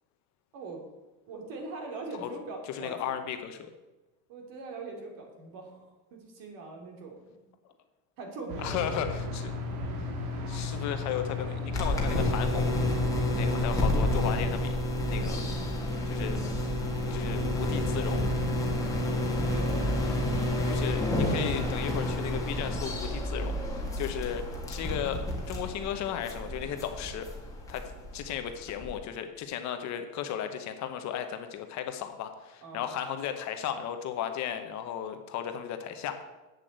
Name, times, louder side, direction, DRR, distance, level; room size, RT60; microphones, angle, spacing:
voice 1, 1.3-3.0 4.3-7.4 8.2-9.0 18.9-20.6 32.6-32.9, right 3 dB, 50° right, 3 dB, 2.8 m, -42 dB
voice 2, 2.7-3.7 8.6-9.5 10.0-10.1 10.5-12.8 13.3-14.7 15.0-15.5 16.0-16.4 17.1-18.3 20.6-27.3 27.7-36.2, left 9 dB, 40° left, 7 dB, 1.0 m, -35 dB
sound 1, 8.5-14.4, left 3 dB, 85° right, 2.8 m, -35 dB
sound 2, 11.7-28.9, left 1 dB, 10° left, 1.9 m, -30 dB
8.4 x 7.6 x 8.0 m, 1.1 s
cardioid pair, 165°, 42 cm